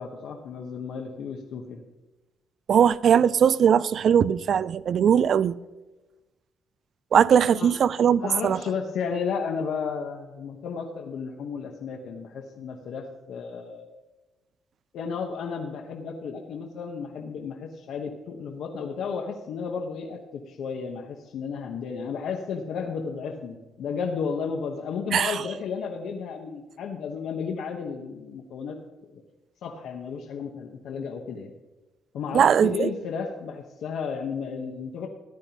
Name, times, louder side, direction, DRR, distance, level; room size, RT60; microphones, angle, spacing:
voice 1, 0.0-1.8 7.5-7.7 8.2-13.9 14.9-29.2 29.6-31.5 32.1-35.1, left 6 dB, 75° left, 1.0 m, -33 dB
voice 2, 2.7-5.6 7.1-8.6 25.1-25.3 32.3-32.9, right 8 dB, 60° right, 0.3 m, -20 dB
14.0 x 9.9 x 2.9 m
cardioid pair, 90°, 0 cm